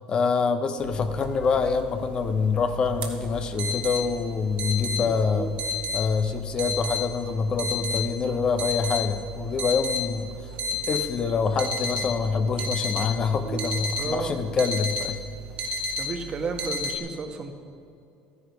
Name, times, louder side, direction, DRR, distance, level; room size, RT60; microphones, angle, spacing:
voice 1, 0.1-5.6 5.9-10.5 10.9-15.2, left 5 dB, 35° left, 9 dB, 0.8 m, -26 dB
sound 1, 0.8-17.0, left 2 dB, 55° right, 1.7 m, -32 dB
voice 2, 14.0-14.4 16.0-17.5, right 4 dB, 40° right, 5 dB, 1.4 m, -32 dB
13.0 x 9.8 x 6.0 m, 2.6 s
supercardioid pair, 105°, 3 cm